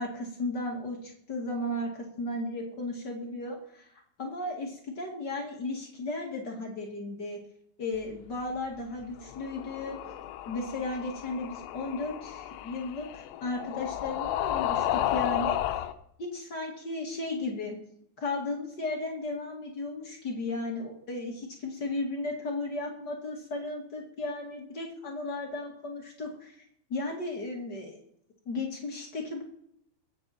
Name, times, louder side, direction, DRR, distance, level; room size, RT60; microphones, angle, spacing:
voice 1, 0.0-3.9 4.2-7.4 7.8-10.0 10.4-15.6 16.2-17.8 18.2-26.5 26.9-28.0 28.4-29.4, left 2 dB, 45° left, 0 dB, 1.3 m, -35 dB
sound 1, 9.2-15.9, left 12 dB, 85° left, 3.5 m, -33 dB
23.0 x 9.0 x 4.3 m, 0.71 s
omnidirectional pair, 5.6 m